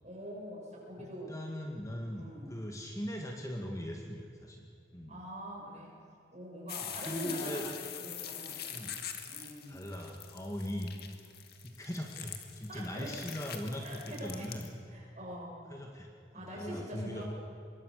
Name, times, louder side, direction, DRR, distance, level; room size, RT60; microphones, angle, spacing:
voice 1, 0.0-1.3 2.1-2.6 5.1-5.9 6.3-7.7 8.0-9.0 9.3-9.9 12.7-13.2 13.8-14.5 14.9-15.7 16.3-17.2, equal, 40° right, -2 dB, 6.8 m, -44 dB
voice 2, 1.0-4.7 4.9-5.2 7.1-7.7 8.7-8.9 9.7-10.9 11.6-15.0 15.7-16.1 16.5-17.2, equal, 20° left, 1 dB, 2.1 m, -40 dB
sound 1, 6.7-14.7, left 9 dB, 55° left, 2.0 m, -44 dB
25.0 x 22.0 x 6.8 m, 2.5 s
head